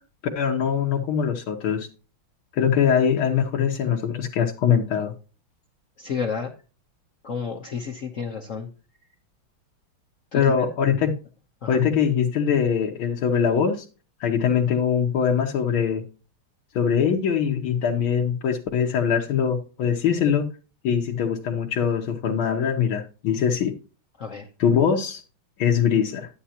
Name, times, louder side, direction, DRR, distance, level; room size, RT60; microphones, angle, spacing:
voice 1, 0.4-1.9 2.5-5.1 10.3-11.1 11.7-13.9 14.2-16.0 16.8-20.5 20.8-23.7 24.6-25.2 25.6-26.3, left 7 dB, 75° left, 1 dB, 1.8 m, -22 dB
voice 2, 6.0-6.5 7.2-8.7 10.3-10.7 11.6-11.8 24.2-24.5, left 6 dB, 55° left, 1 dB, 1.0 m, -31 dB
11.5 x 8.4 x 2.8 m, 0.34 s
omnidirectional pair, 2.3 m